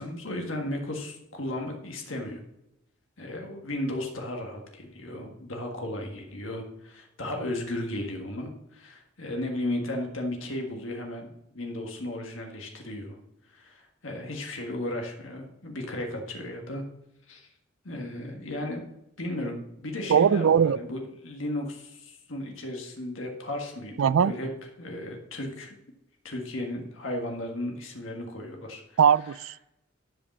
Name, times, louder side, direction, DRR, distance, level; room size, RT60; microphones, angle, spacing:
voice 1, 0.0-2.4 3.2-11.3 11.5-13.2 13.5-16.8 17.3-17.5 17.8-18.8 19.2-24.5 24.8-25.8 26.2-29.0, left 1 dB, 85° left, 2 dB, 1.6 m, -35 dB
voice 2, 20.1-20.8 24.0-24.3 29.0-29.6, right 8 dB, 85° right, 21 dB, 0.4 m, -20 dB
11.0 x 5.1 x 7.3 m, 0.89 s
head